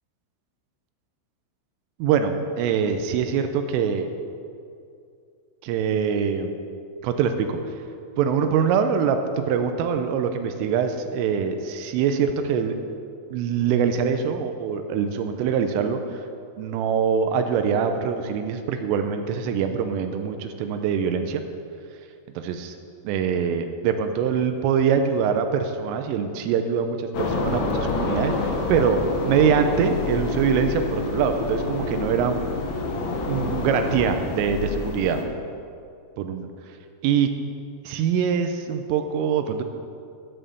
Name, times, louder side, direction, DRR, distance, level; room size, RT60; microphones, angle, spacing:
voice 1, 2.0-4.1 5.6-6.5 7.0-7.6 8.2-12.7 13.3-16.2 16.6-21.4 22.4-22.8 23.0-32.5 32.7-32.8 33.3-35.2 36.2-36.5 37.0-37.3 37.8-39.6, right 7 dB, 85° right, 7 dB, 3.2 m, -24 dB
sound 1, 27.1-35.2, left 3 dB, 70° left, 2.3 m, -27 dB
14.0 x 7.4 x 6.9 m, 2.4 s
omnidirectional pair, 6.0 m